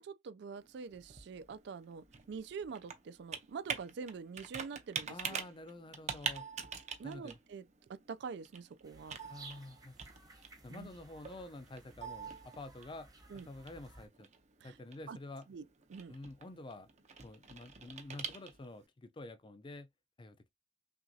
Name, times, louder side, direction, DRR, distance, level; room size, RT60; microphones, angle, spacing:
voice 1, 0.0-5.4 7.0-7.6 7.9-9.2 10.7-10.9 13.3-13.5 14.6-14.7 15.1-15.2 15.5-16.2, right 5 dB, 65° right, 0.4 m, -45 dB
Computer keyboard, 0.6-18.8, right 6 dB, 40° right, 0.7 m, -46 dB
voice 2, 5.1-6.5 7.0-7.4 9.3-9.9 10.6-13.1 13.3-14.3 14.6-15.5 16.1-16.9 17.2-19.9 20.2-20.5, left 2 dB, 25° left, 0.4 m, -48 dB
sound 1, 8.8-14.1, right 3 dB, 20° right, 1.0 m, -57 dB
5.9 x 2.4 x 2.7 m
head